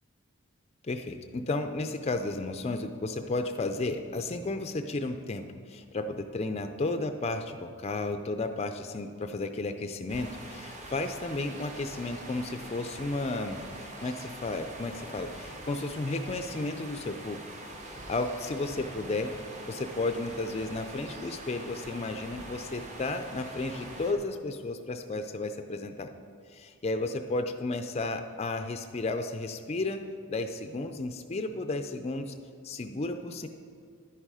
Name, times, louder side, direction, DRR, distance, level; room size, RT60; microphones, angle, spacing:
voice 1, 0.8-17.4 18.1-19.3 19.6-26.1 26.5-30.0 30.3-32.3 32.6-33.5, left 2 dB, 30° left, 7 dB, 0.4 m, -33 dB
sound 1, 10.1-24.1, right 1 dB, 30° right, 0.9 m, -44 dB
10.5 x 9.1 x 4.8 m, 2.3 s
head